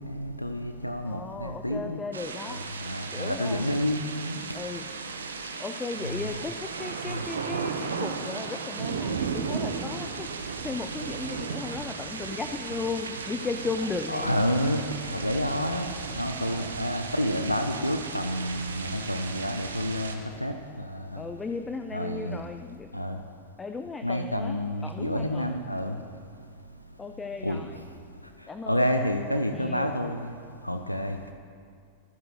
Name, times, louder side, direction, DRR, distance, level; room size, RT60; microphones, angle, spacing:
voice 1, 0.0-2.0 2.5-4.4 5.2-5.3 7.1-7.2 14.1-21.2 21.9-22.4 22.9-23.2 24.0-26.0 27.4-27.6 28.7-30.3 30.6-31.3, equal, 90° left, 7 dB, 0.7 m, -29 dB
voice 2, 1.0-2.6 3.1-3.8 4.5-4.9 5.6-14.4 16.4-16.8 21.1-23.0 23.6-25.5 27.0-27.9 28.5-28.9 29.3-29.9, left 4 dB, 15° left, 8 dB, 0.6 m, -36 dB
sound 1, 2.1-20.2, right 5 dB, 70° right, 1.3 m, -35 dB
25.0 x 15.0 x 3.3 m, 2.2 s
figure-of-eight pair, 90°, 0 cm